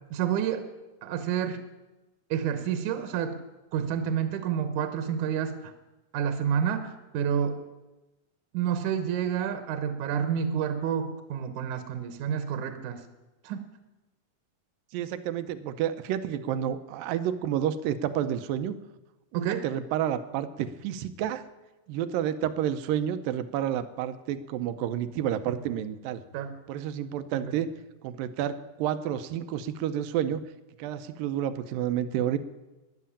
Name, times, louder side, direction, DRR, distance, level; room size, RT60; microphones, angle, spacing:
voice 1, 0.1-0.6 1.0-1.6 2.3-3.4 3.7-5.7 6.1-7.6 8.5-13.0 13.4-13.6 19.3-19.7 25.5-25.6 26.3-26.5 27.4-27.5, right 8 dB, 70° right, 8 dB, 2.3 m, -29 dB
voice 2, 14.9-18.8 19.3-21.4 21.9-26.2 26.7-27.7 28.0-30.4 30.8-32.4, right 10 dB, 85° right, 11 dB, 2.5 m, -30 dB
13.5 x 10.5 x 8.6 m, 1.1 s
omnidirectional pair, 4.1 m